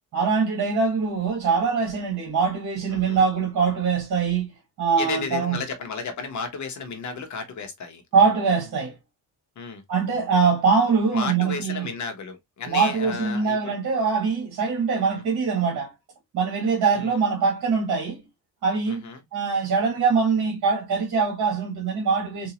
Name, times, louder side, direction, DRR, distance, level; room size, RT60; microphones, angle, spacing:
voice 1, 0.1-4.5 4.8-5.6 8.1-8.9 9.9-11.9 12.7-15.9 16.3-18.2 18.6-22.5, right 5 dB, 55° right, 1.6 m, -23 dB
voice 2, 5.0-8.3 9.6-9.8 11.1-13.8 17.0-17.1 18.9-19.2, left 5 dB, 50° left, 0.9 m, -33 dB
3.8 x 2.7 x 2.9 m
cardioid pair, 155°, 37 cm